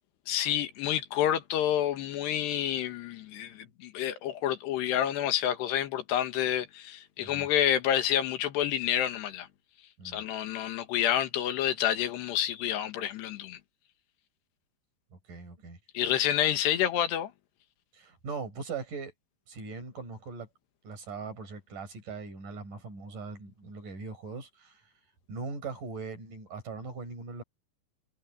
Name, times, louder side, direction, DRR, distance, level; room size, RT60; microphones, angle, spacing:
voice 1, 0.3-9.5 10.1-13.6 16.0-17.3, left 11 dB, 85° left, 3.7 m, -29 dB
voice 2, 15.1-15.8 17.9-19.1 19.5-20.5 20.8-24.9 25.3-27.4, right 4 dB, 50° right, 7.4 m, -40 dB
omnidirectional pair, 4.7 m